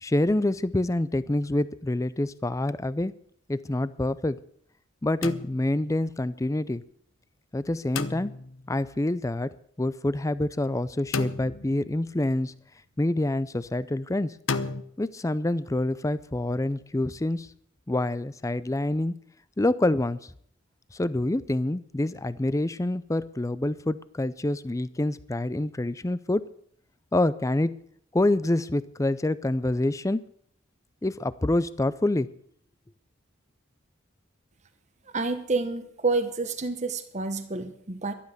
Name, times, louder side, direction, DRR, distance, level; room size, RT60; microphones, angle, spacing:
voice 1, 0.0-3.1 3.5-4.4 5.0-6.8 7.5-8.3 8.7-9.5 9.8-12.5 13.0-14.4 15.0-17.5 17.9-19.1 19.6-20.3 20.9-26.4 27.1-27.7 28.1-30.2 31.0-32.3, left 1 dB, 15° left, 16 dB, 0.5 m, -26 dB
sound 1, 5.2-6.0 8.0-8.7 11.1-12.0 14.5-14.8, left 4 dB, 75° left, 0.8 m, -32 dB
voice 2, 35.1-38.1, right 3 dB, 35° right, 8 dB, 1.0 m, -28 dB
12.0 x 11.5 x 6.7 m, 0.65 s
head